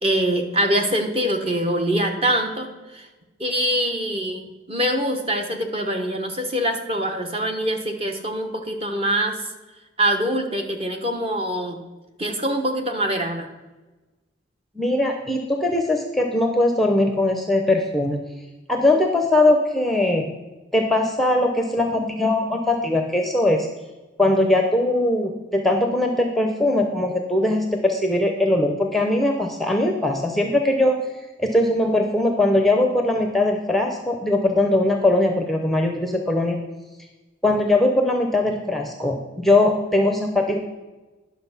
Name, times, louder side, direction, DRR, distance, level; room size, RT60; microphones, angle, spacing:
voice 1, 0.0-3.1 3.4-9.4 10.0-11.8 12.2-13.5, equal, 30° right, 4 dB, 1.0 m, -24 dB
voice 2, 14.8-18.2 18.7-20.3 20.7-23.7 24.2-31.0 31.4-36.6 37.4-40.6, left 1 dB, ahead, 3 dB, 0.7 m, -20 dB
10.5 x 6.3 x 5.7 m, 1.2 s
head